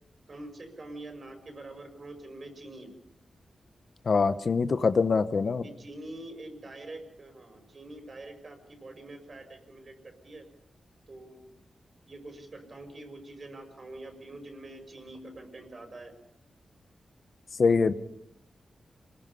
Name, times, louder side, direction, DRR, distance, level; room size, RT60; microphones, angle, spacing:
voice 1, 0.3-2.9 5.4-10.4 11.1-11.4 12.1-16.1, right 2 dB, 40° right, 6 dB, 5.7 m, -45 dB
voice 2, 4.1-5.6 17.6-17.9, left 4 dB, 55° left, 12 dB, 0.9 m, -24 dB
28.0 x 21.0 x 5.5 m, 0.76 s
wide cardioid pair, 110°, 0 cm